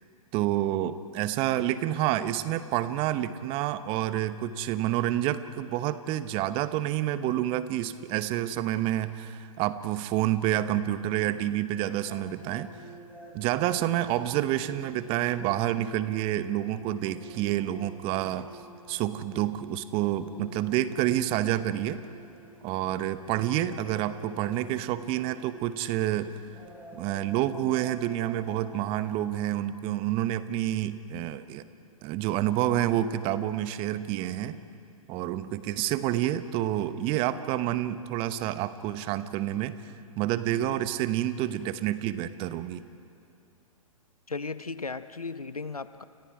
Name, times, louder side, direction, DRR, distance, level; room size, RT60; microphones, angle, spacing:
voice 1, 0.3-12.7 13.3-18.5 18.9-22.0 22.6-26.4 26.9-31.6 32.0-34.6 35.1-39.8 40.2-42.8, right 13 dB, 30° right, 13 dB, 1.0 m, -28 dB
sound 1, 12.1-29.5, right 1 dB, 10° right, 4.6 m, -49 dB
voice 2, 44.3-46.0, left 4 dB, 90° left, 13 dB, 0.9 m, -36 dB
30.0 x 28.0 x 4.9 m, 2.5 s
figure-of-eight pair, 115°, 18 cm